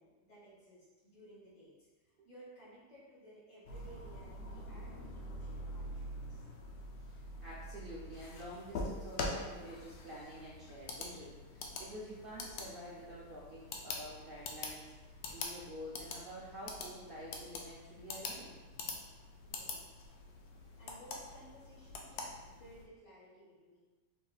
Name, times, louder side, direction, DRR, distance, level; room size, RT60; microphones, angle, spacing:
voice 1, 0.0-6.4 19.4-20.0 20.8-23.8, right 1 dB, 50° left, -8 dB, 1.9 m, -58 dB
sound 1, 3.7-22.8, left 2 dB, 70° left, 1.0 m, -45 dB
voice 2, 7.1-18.6, equal, 90° right, -7 dB, 0.4 m, -49 dB
4.7 x 3.0 x 2.3 m, 1.2 s
omnidirectional pair, 1.8 m